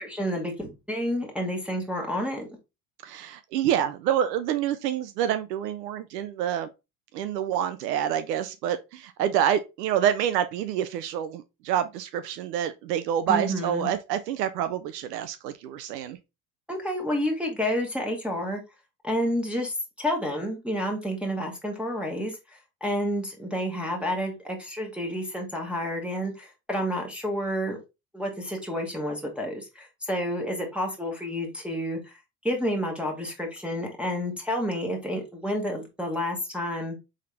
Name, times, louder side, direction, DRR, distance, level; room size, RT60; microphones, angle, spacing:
voice 1, 0.0-2.5 13.3-13.9 16.7-18.6 19.0-27.8 28.1-32.1 32.4-37.0, equal, ahead, 1.3 m, -30 dB
voice 2, 3.0-6.7 7.1-16.2, right 10 dB, 85° right, 0.6 m, -27 dB
3.6 x 3.5 x 3.3 m
hypercardioid pair, 75°, 47 cm